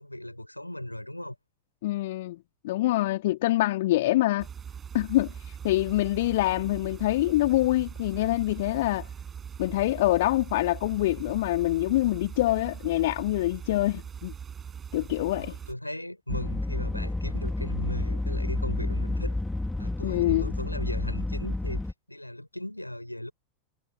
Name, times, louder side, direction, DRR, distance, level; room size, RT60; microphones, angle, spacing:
voice 1, 0.0-1.4 3.4-3.5 15.3-19.4 19.8-23.3, left 1 dB, 85° left, 5.7 m, -37 dB
voice 2, 1.8-2.4 2.6-4.5 4.9-5.3 5.6-9.1 9.6-14.3 14.9-15.5 20.0-20.5, left 16 dB, 55° left, 2.4 m, -25 dB
sound 1, 4.4-15.7, right 7 dB, 20° right, 6.2 m, -41 dB
sound 2, 16.3-21.9, left 2 dB, 5° left, 1.2 m, -30 dB
figure-of-eight pair, 90°, 0 cm